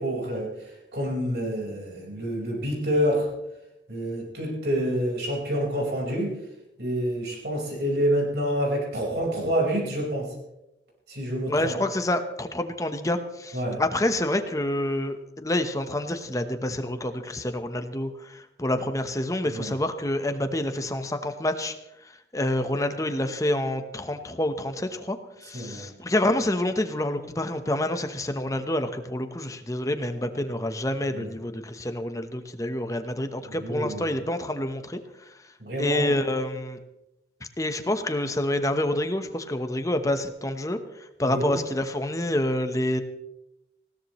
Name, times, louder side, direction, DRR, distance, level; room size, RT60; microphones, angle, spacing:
voice 1, 0.0-3.3 3.9-6.4 6.8-10.3 11.1-11.7 13.5-13.8 19.4-19.7 25.5-25.8 31.1-31.3 33.4-34.2 35.6-36.1 41.2-41.6, equal, 65° right, -2 dB, 4.7 m, -28 dB
voice 2, 11.5-21.7 22.3-35.0 35.8-36.8 37.6-40.8 41.2-43.0, left 1 dB, 20° left, 8 dB, 1.0 m, -27 dB
20.0 x 17.0 x 3.1 m, 0.89 s
head